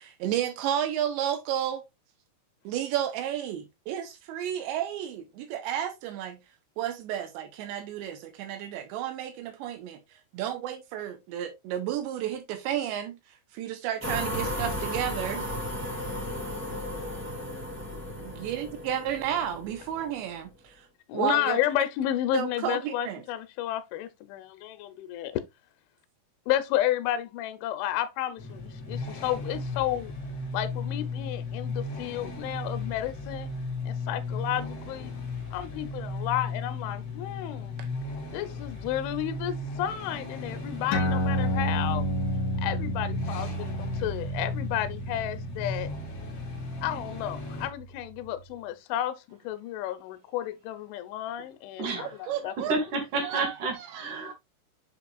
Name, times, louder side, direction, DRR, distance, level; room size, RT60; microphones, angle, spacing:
voice 1, 0.0-1.8 2.7-6.4 6.8-10.0 10.3-13.2 13.5-15.4 18.2-20.9 21.1-21.6 22.3-23.2 37.8-37.9 52.0-52.8 53.2-54.1, right 10 dB, 75° right, 2.8 m, -32 dB
sound 1, 14.0-20.2, left 1 dB, 10° right, 0.6 m, -34 dB
voice 2, 21.1-25.4 26.5-30.1 30.5-33.5 33.8-35.1 35.5-37.8 38.3-42.1 42.6-45.9 46.8-52.5, left 12 dB, 80° left, 3.0 m, -32 dB
sound 2, 28.4-47.7, left 3 dB, 40° left, 3.2 m, -36 dB
sound 3, 40.9-47.8, equal, 60° left, 3.4 m, -31 dB
voice 3, 51.8-52.3 52.7-54.3, right 3 dB, 55° right, 2.4 m, -31 dB
7.9 x 5.7 x 2.4 m
omnidirectional pair, 5.9 m